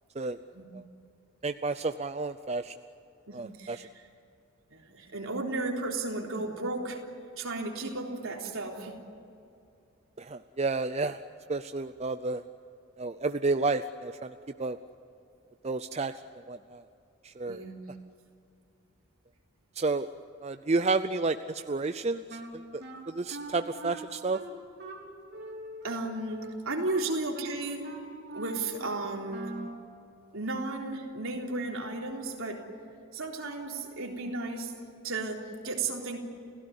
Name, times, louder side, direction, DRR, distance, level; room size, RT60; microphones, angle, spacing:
voice 1, 1.4-2.8 3.3-3.8 10.2-11.2 11.5-12.4 13.0-14.8 15.6-16.2 16.5-16.8 17.2-17.6 19.8-20.1 20.4-24.4, right 3 dB, 30° right, 10 dB, 0.5 m, -31 dB
voice 2, 3.3-4.0 4.7-7.0 7.4-9.0 17.5-17.8 25.8-27.9 28.3-29.5 30.3-32.6 33.1-34.7 35.0-36.2, right 2 dB, 70° right, 0 dB, 3.8 m, -34 dB
Wind instrument woodwind instrument, 22.3-29.8, right 1 dB, 50° right, 4.1 m, -43 dB
29.5 x 16.5 x 9.7 m, 2.6 s
head